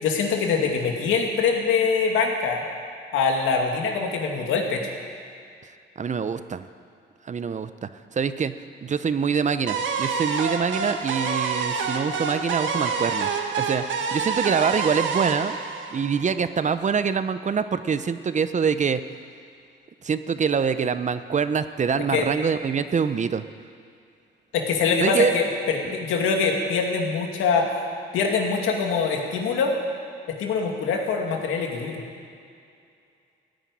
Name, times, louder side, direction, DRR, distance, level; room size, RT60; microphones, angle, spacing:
voice 1, 0.0-2.6 3.1-4.8 22.1-22.3 24.5-27.7 28.1-29.7 30.3-32.0, left 5 dB, 85° left, 1 dB, 2.4 m, -23 dB
voice 2, 6.0-6.6 7.3-8.5 8.8-13.3 13.6-13.8 14.1-15.6 15.9-19.0 20.0-23.4 25.0-25.3, right 6 dB, 35° right, 12 dB, 0.8 m, -25 dB
sound 1, 9.7-16.6, right 5 dB, 70° right, 1.4 m, -27 dB
15.5 x 9.0 x 10.0 m, 2.4 s
cardioid pair, 90°, 20 cm